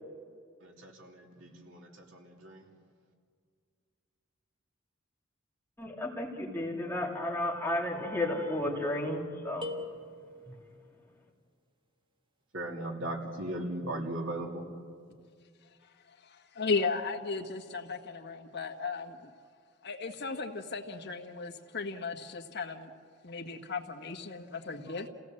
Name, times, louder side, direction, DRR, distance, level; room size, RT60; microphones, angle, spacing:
voice 1, 0.6-2.6 12.5-14.6, right 1 dB, 70° right, 1 dB, 3.0 m, -38 dB
voice 2, 5.8-9.7, left 1 dB, 10° left, -1 dB, 2.9 m, -33 dB
sound 1, 9.6-10.8, left 2 dB, 25° right, 1.7 m, -41 dB
voice 3, 16.5-19.3 19.8-22.9 23.2-25.1, left 4 dB, 60° left, 2 dB, 1.6 m, -35 dB
29.5 x 17.0 x 7.8 m, 2.1 s
head